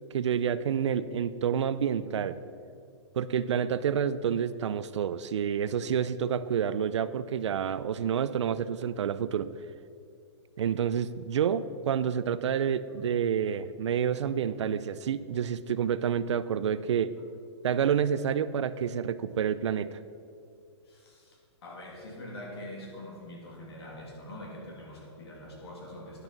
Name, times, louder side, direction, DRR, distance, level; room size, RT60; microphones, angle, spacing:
voice 1, 0.1-2.4 3.2-9.6 10.6-17.1 17.6-20.0, right 8 dB, 75° right, 15 dB, 0.5 m, -28 dB
voice 2, 20.8-26.2, left 1 dB, 60° left, -2 dB, 2.8 m, -44 dB
10.5 x 6.6 x 5.9 m, 2.4 s
hypercardioid pair, 170°, 15 cm